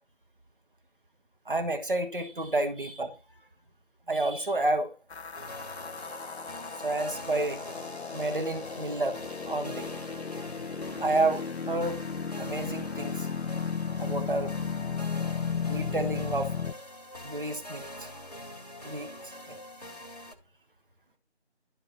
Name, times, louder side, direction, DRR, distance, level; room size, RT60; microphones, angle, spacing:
voice 1, 1.4-3.1 4.1-4.9 6.8-7.6 8.1-9.2 9.4-9.9 11.0-12.0 12.4-13.3 14.0-14.5 15.7-16.5 17.2-18.1 18.8-19.1 19.5-19.6, right 2 dB, 50° right, 1.5 m, -30 dB
sound 1, 5.1-16.7, left 6 dB, 70° left, 0.7 m, -35 dB
sound 2, 5.3-20.3, left 1 dB, 35° left, 1.3 m, -44 dB
12.0 x 4.5 x 4.0 m
figure-of-eight pair, 175°, 34 cm